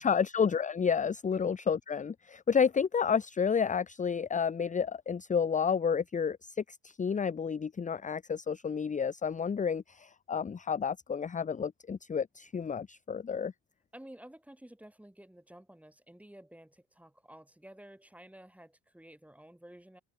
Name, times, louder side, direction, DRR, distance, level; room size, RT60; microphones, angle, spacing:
voice 1, 0.0-13.5, left 6 dB, 25° left, 0.7 m, -30 dB
voice 2, 13.9-20.0, right 1 dB, 5° right, 3.7 m, -52 dB
cardioid pair, 90°, 30 cm